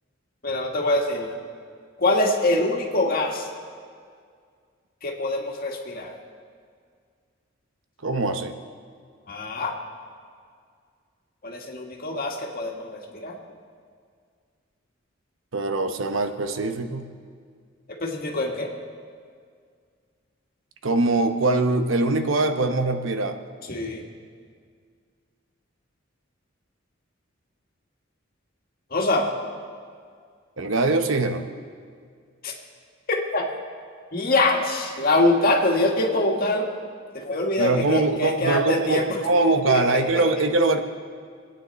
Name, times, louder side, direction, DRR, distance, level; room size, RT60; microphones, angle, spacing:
voice 1, 0.4-1.3 2.0-3.5 5.0-6.2 9.3-9.8 11.4-13.4 18.0-18.7 23.7-24.0 28.9-29.3 32.4-32.5 33.1-33.4 34.1-36.7 37.1-39.0 39.7-40.0, left 2 dB, 50° left, 0 dB, 1.8 m, -24 dB
voice 2, 8.0-8.5 15.5-17.1 20.8-23.4 30.6-31.4 37.6-40.8, right 2 dB, 80° right, 7 dB, 0.9 m, -22 dB
25.0 x 9.2 x 4.1 m, 2.1 s
head